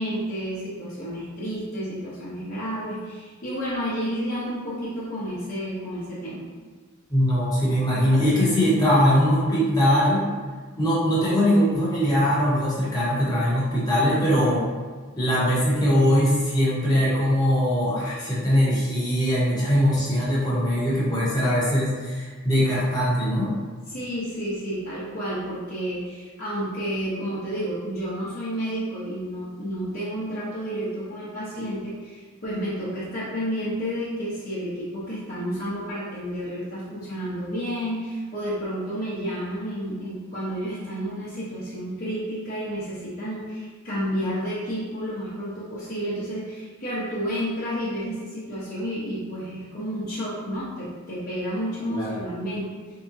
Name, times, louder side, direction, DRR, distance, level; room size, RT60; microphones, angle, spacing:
voice 1, 0.0-6.4 23.9-53.0, equal, 45° left, -12 dB, 0.8 m, -31 dB
voice 2, 7.1-10.3 10.8-14.6 15.2-23.5 51.9-52.2, equal, 20° left, -8 dB, 1.0 m, -21 dB
3.7 x 2.8 x 2.6 m, 1.5 s
head